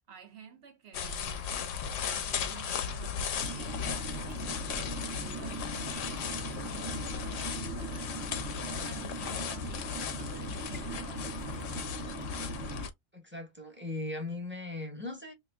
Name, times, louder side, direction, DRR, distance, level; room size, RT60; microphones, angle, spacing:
voice 1, 0.0-11.7, right 8 dB, 60° right, 0.8 m, -52 dB
sound 1, 0.9-12.9, left 7 dB, 70° left, 1.0 m, -36 dB
Raindrop / Water tap faucet / Drip, 1.7-2.0 2.6-2.8 3.4-3.5 4.2-4.4 5.0-5.2 5.8-6.0 6.6-6.7 7.4-7.6 8.2-8.3 9.0-9.2 9.8-10.1 10.6-10.9 11.4-11.6 12.2-12.4, left 6 dB, 40° left, 0.7 m, -54 dB
sound 2, 3.4-12.9, right 5 dB, 30° right, 0.4 m, -41 dB
voice 2, 13.1-15.3, left 2 dB, 10° right, 0.8 m, -38 dB
3.0 x 2.5 x 3.3 m
omnidirectional pair, 1.4 m